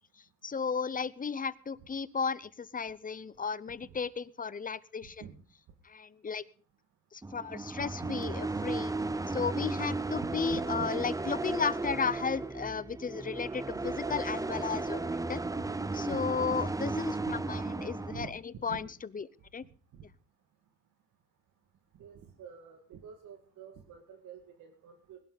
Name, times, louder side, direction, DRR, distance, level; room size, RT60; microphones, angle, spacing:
voice 1, 0.4-5.2 5.8-6.4 7.1-8.9 9.3-15.4 15.9-18.9 19.1-19.3 19.5-19.6, left 5 dB, 30° left, 18 dB, 0.8 m, -34 dB
voice 2, 5.0-5.4 8.0-8.2 10.2-10.9 13.7-13.9 16.1-16.3 16.6-16.7 18.0-18.4 18.7-18.9 19.9-20.0 22.0-25.2, right 7 dB, 75° right, 4 dB, 2.3 m, -48 dB
sound 1, 7.2-18.3, right 3 dB, 10° right, 0.6 m, -35 dB
20.5 x 11.5 x 4.1 m, 0.41 s
cardioid pair, 90°, 30 cm